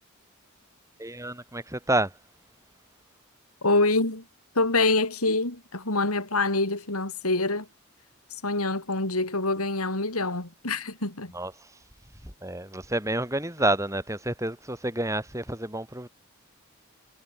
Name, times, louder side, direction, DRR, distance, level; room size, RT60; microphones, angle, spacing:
voice 1, 1.0-2.1 11.3-11.5 12.4-16.1, right 1 dB, 15° right, 7.7 m, -29 dB
voice 2, 3.6-4.2 4.5-7.7 8.4-11.3, left 2 dB, 85° left, 5.1 m, -25 dB
head